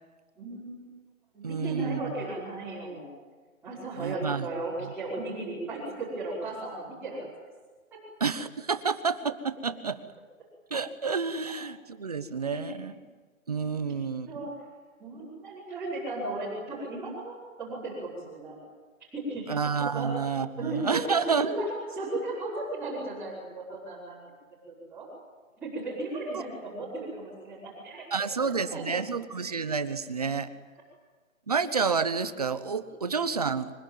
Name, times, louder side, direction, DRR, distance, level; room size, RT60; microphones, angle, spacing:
voice 1, 0.4-0.9 1.3-3.1 3.6-7.3 12.4-12.7 14.3-14.5 15.0-18.5 19.1-19.6 19.9-20.1 20.6-21.0 21.3-24.2 24.7-25.0 25.6-28.3 28.7-29.1 32.9-33.2, right 2 dB, 5° right, -13 dB, 5.5 m, -36 dB
voice 2, 1.4-2.1 3.9-4.5 8.2-10.0 10.7-13.0 13.5-14.3 19.5-21.5 28.1-30.5 31.5-33.7, right 5 dB, 30° right, 12 dB, 1.0 m, -29 dB
25.0 x 23.0 x 9.3 m, 1.4 s
hypercardioid pair, 175°, 41 cm